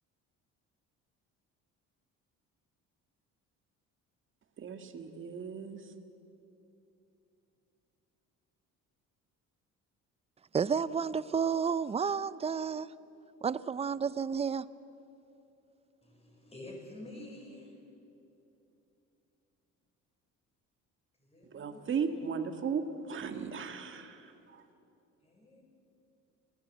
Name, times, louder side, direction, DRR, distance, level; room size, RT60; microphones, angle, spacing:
voice 1, 4.6-5.9 21.5-24.6, right 6 dB, 40° right, 7 dB, 1.8 m, -36 dB
voice 2, 10.5-12.9 13.4-14.7, right 6 dB, 20° right, 17 dB, 0.5 m, -31 dB
voice 3, 16.0-17.7 21.2-22.5 25.2-25.6, left 1 dB, 20° left, 0 dB, 5.9 m, -49 dB
26.0 x 16.5 x 8.5 m, 2.8 s
cardioid pair, 130°, 30 cm